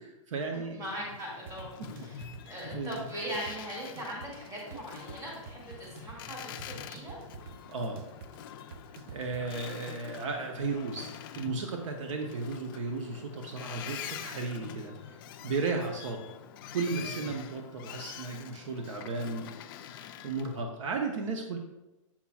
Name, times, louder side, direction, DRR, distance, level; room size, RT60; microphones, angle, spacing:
voice 1, 0.0-0.8 2.7-3.0 7.7-8.0 9.1-15.2 15.4-16.3 16.7-19.5 19.8-21.6, right 4 dB, 70° right, 3 dB, 0.8 m, -35 dB
voice 2, 0.5-7.2, right 1 dB, 20° right, -4 dB, 2.0 m, -40 dB
Boat Water vehicle, 0.8-20.6, left 9 dB, 40° left, 0.4 m, -45 dB
sound 1, 1.5-9.5, right 6 dB, 45° right, 0.5 m, -49 dB
7.2 x 5.5 x 2.3 m, 0.99 s
hypercardioid pair, 145°, 17 cm